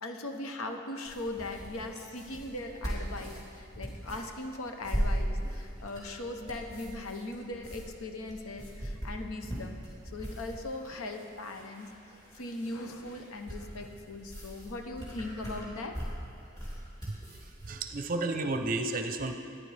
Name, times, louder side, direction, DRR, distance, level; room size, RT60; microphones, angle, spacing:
voice 1, 0.0-9.8 10.0-16.0, left 2 dB, 90° left, 5 dB, 0.9 m, -39 dB
sound 1, 1.1-17.8, equal, 15° left, 3.0 m, -39 dB
voice 2, 17.1-19.4, right 2 dB, 40° right, 6 dB, 0.6 m, -33 dB
14.5 x 9.9 x 3.4 m, 2.4 s
head